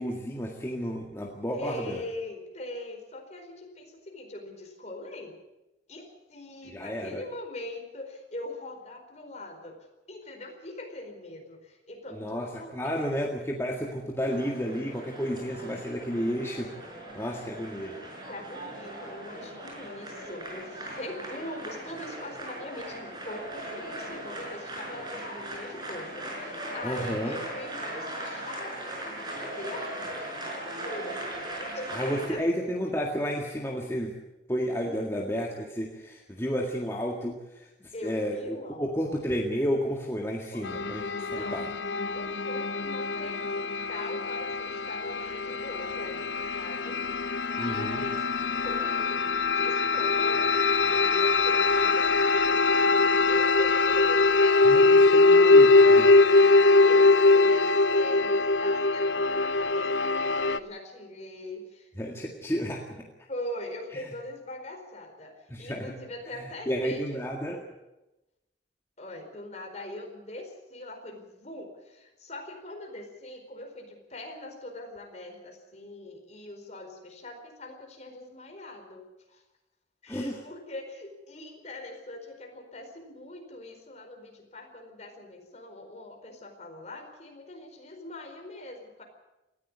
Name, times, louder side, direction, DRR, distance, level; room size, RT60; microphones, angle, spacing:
voice 1, 0.0-2.0 6.7-7.2 12.1-16.7 17.1-18.0 26.8-27.4 31.9-34.2 34.5-41.0 41.3-41.7 47.6-48.0 54.6-56.1 62.0-63.0 65.5-65.9 66.4-67.6 80.1-80.4, equal, 15° left, 0 dB, 1.9 m, -31 dB
voice 2, 1.5-5.4 5.9-13.1 15.1-15.8 18.3-32.4 37.9-39.1 40.5-40.7 41.2-41.7 42.1-48.3 48.5-61.9 63.3-67.2 69.0-79.4 80.0-89.0, left 1 dB, 40° left, 3 dB, 4.5 m, -42 dB
sound 1, 14.3-32.3, right 1 dB, 25° right, 5.7 m, -39 dB
sound 2, 40.6-60.6, left 3 dB, 90° left, 0.8 m, -22 dB
19.0 x 14.5 x 9.6 m, 0.98 s
head